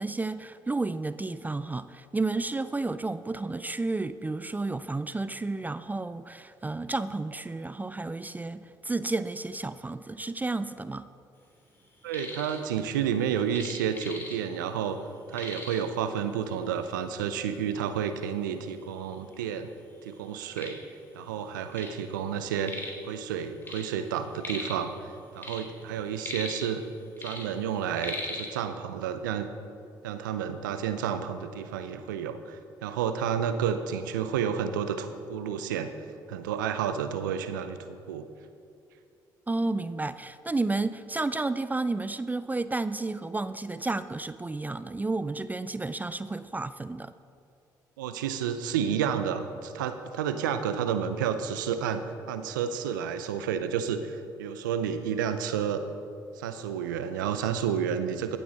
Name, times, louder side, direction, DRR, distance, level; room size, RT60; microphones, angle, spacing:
voice 1, 0.0-11.1 39.5-47.1, right 3 dB, 15° right, 14 dB, 0.4 m, -31 dB
sound 1, 11.8-12.6 12.9-14.7 14.9-15.0 15.3-16.0 16.8-16.9 17.4-17.5 18.2-18.3 18.6-19.5 19.9-22.0 22.3-23.1 23.4-24.9 25.2-26.9 27.2-28.5, left 1 dB, 20° left, 2.9 m, -39 dB
voice 2, 12.0-15.0 15.3-19.7 20.0-20.8 21.1-22.7 23.0-26.8 27.2-29.5 30.0-35.9 36.3-38.3 48.0-52.0 52.3-55.8 56.4-58.4, right 8 dB, 90° right, 10 dB, 0.5 m, -30 dB
14.5 x 8.4 x 4.1 m, 2.5 s
hypercardioid pair, 50°, 10 cm